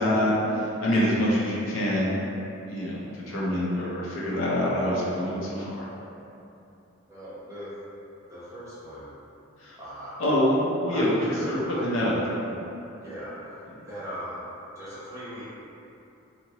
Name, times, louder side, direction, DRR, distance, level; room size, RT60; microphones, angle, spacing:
voice 1, 0.0-2.2 2.7-5.9 9.6-9.8 10.2-12.4, equal, 70° left, -6 dB, 0.6 m, -25 dB
voice 2, 7.1-7.7 8.3-9.0 9.8-10.3 10.9-12.2 13.0-14.4 14.8-15.5, equal, 15° right, -11 dB, 0.7 m, -39 dB
2.8 x 2.5 x 2.8 m, 2.8 s
head